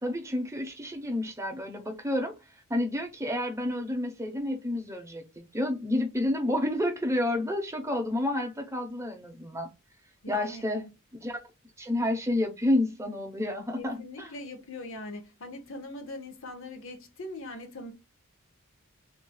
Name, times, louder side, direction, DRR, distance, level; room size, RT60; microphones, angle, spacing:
voice 1, 0.0-2.3 2.7-5.3 5.5-9.7 10.3-10.8 11.2-11.4 11.8-14.3, left 1 dB, 15° right, 0.8 m, -30 dB
voice 2, 10.2-10.9 13.8-17.9, left 2 dB, 60° left, 0.9 m, -41 dB
3.6 x 3.1 x 2.2 m
head